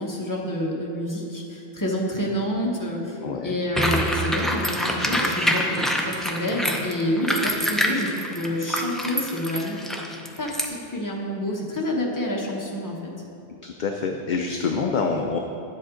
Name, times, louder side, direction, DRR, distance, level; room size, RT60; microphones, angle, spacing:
voice 1, 0.0-9.8 10.4-13.1, left 1 dB, 15° left, -2 dB, 1.1 m, -28 dB
voice 2, 3.2-3.6 13.6-15.4, left 5 dB, 55° left, 3 dB, 0.5 m, -26 dB
sound 1, 3.8-10.7, equal, ahead, 0.4 m, -25 dB
9.8 x 7.6 x 3.7 m, 2.8 s
omnidirectional pair, 1.2 m